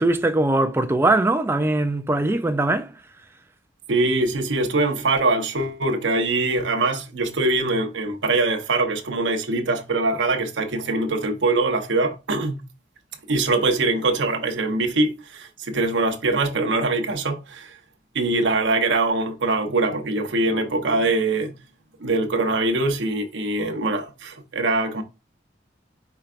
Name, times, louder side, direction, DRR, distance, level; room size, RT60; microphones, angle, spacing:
voice 1, 0.0-2.9, right 2 dB, 15° right, 0.4 m, -21 dB
voice 2, 3.9-12.6 13.3-17.8 18.1-21.5 22.0-25.0, right 2 dB, 80° right, 0.8 m, -23 dB
4.6 x 4.5 x 2.4 m
head